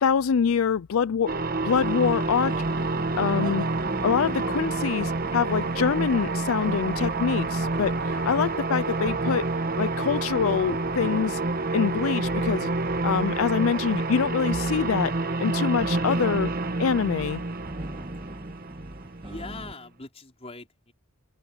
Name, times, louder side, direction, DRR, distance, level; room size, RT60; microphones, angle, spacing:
voice 1, 0.0-1.3 1.6-2.5 3.2-3.7 4.0-9.4 9.8-11.4 11.7-12.7 13.0-15.1 15.4-16.5 16.8-17.4, left 6 dB, 80° left, 0.4 m, -25 dB
sound 1, 1.3-19.6, right 3 dB, 45° right, 1.2 m, -28 dB
sound 2, 1.7-19.7, right 1 dB, 25° right, 2.2 m, -41 dB
voice 2, 19.2-20.9, left 3 dB, 30° left, 5.0 m, -41 dB
open air
head